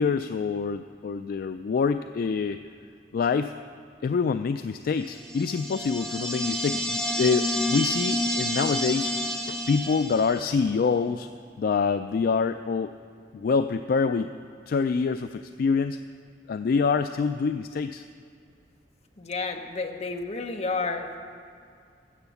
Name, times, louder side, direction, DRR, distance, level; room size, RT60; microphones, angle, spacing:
voice 1, 0.0-2.6 3.1-3.5 4.0-9.1 9.5-11.3 11.6-12.9 13.3-14.3 14.7-16.0 16.5-18.0, left 5 dB, 55° left, 10 dB, 0.3 m, -26 dB
sound 1, 5.2-10.6, equal, ahead, 1.1 m, -29 dB
voice 2, 19.2-21.0, left 3 dB, 40° left, 4 dB, 0.9 m, -30 dB
13.5 x 8.0 x 7.0 m, 2.3 s
head